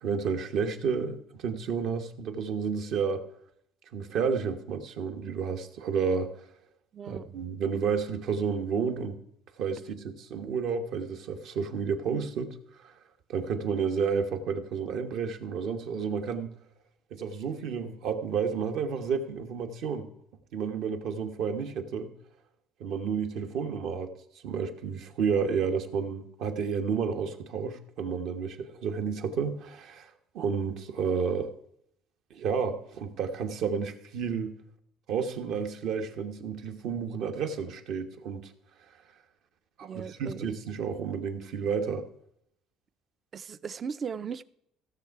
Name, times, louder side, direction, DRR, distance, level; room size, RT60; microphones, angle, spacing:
voice 1, 0.0-3.2 3.9-6.4 7.0-9.2 9.6-12.9 13.3-16.6 17.1-20.1 20.5-22.1 22.8-24.1 24.4-30.1 30.3-31.5 32.3-34.6 35.1-38.5 39.8-42.0, right 6 dB, 65° right, 1.2 m, -31 dB
voice 2, 6.9-7.3 39.8-40.4 43.3-44.4, right 6 dB, 35° right, 0.4 m, -37 dB
15.5 x 6.6 x 4.7 m
cardioid pair, 125°, 0 cm